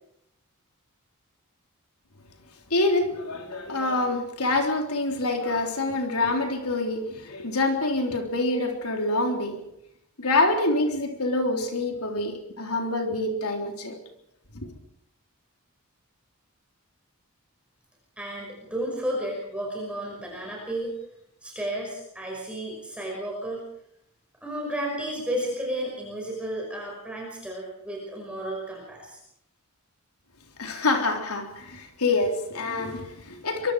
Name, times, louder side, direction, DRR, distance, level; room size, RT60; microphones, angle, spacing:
voice 1, 2.7-9.6 10.2-14.0 14.6-14.8 30.6-33.7, left 2 dB, 80° left, 3 dB, 3.6 m, -26 dB
voice 2, 18.2-20.9 21.4-23.6 24.4-29.2, right 1 dB, 5° right, -2 dB, 5.8 m, -32 dB
24.0 x 23.5 x 4.9 m, 0.76 s
head